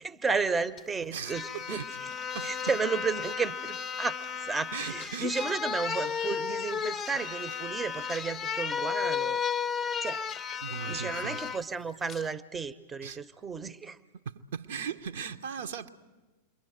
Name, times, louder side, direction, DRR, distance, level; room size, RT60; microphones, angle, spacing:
voice 1, 0.0-1.8 2.4-9.4 10.0-10.2 10.9-14.0, right 4 dB, 15° right, 0.7 m, -33 dB
sound 1, 0.8-0.9 1.3-11.6 12.1-12.3, left 6 dB, 20° left, 0.8 m, -34 dB
voice 2, 1.1-2.0 2.3-2.5 4.7-5.4 7.2-7.4 10.6-11.4 13.0-13.2 14.2-15.9, right 7 dB, 60° right, 0.9 m, -38 dB
28.5 x 22.5 x 7.9 m
figure-of-eight pair, 90°, 0 cm